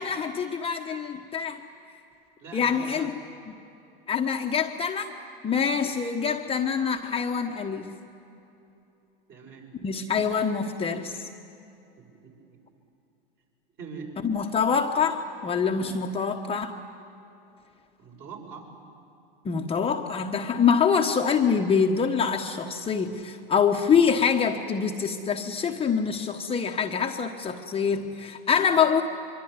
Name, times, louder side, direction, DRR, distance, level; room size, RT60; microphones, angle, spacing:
voice 1, 0.0-1.6 2.5-3.1 3.5-3.6 4.1-5.1 5.4-8.0 9.8-11.2 14.2-16.8 19.4-29.0, left 6 dB, 20° left, 3 dB, 1.1 m, -25 dB
voice 2, 2.4-3.1 9.3-9.6 12.0-12.4 13.8-14.1 18.0-18.7, right 5 dB, 40° right, 1 dB, 7.2 m, -42 dB
24.0 x 24.0 x 9.7 m, 2.8 s
hypercardioid pair, 115°, 29 cm